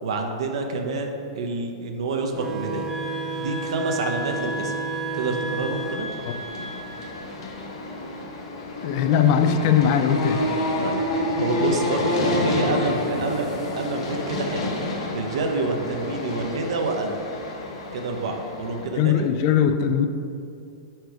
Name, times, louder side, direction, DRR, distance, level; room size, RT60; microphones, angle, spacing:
voice 1, 0.0-2.9 3.4-4.7 5.1-6.1 10.8-13.5 13.7-14.7 15.1-17.2 17.9-19.3, right 3 dB, 75° right, 3 dB, 0.7 m, -28 dB
sound 1, 2.3-7.5, right 3 dB, 15° right, 0.5 m, -32 dB
sound 2, 2.8-7.2, equal, ahead, 0.9 m, -35 dB
sound 3, 5.8-18.9, left 2 dB, 75° left, 1.1 m, -29 dB
voice 2, 8.8-10.4 19.0-20.1, left 8 dB, 45° left, 8 dB, 0.4 m, -20 dB
4.6 x 4.5 x 4.6 m, 2.5 s
supercardioid pair, 155°, 3 cm